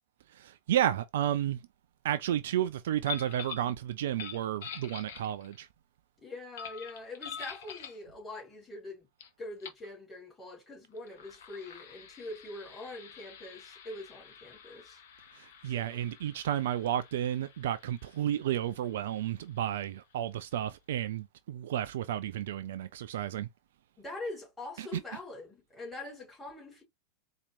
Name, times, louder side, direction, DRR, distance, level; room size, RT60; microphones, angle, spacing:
voice 1, 0.3-1.6 2.0-5.7 15.4-23.5 24.8-24.9, right 11 dB, 55° right, 0.4 m, -32 dB
sound 1, 3.0-3.7 4.1-5.6 6.6-8.0 9.2-9.3 9.6-9.9 10.9-20.2, left 7 dB, 55° left, 0.8 m, -46 dB
voice 2, 6.2-9.1 9.4-15.0 15.7-16.0 24.0-26.8, left 2 dB, 10° left, 2.7 m, -44 dB
4.3 x 2.5 x 2.9 m
figure-of-eight pair, 90°, 0 cm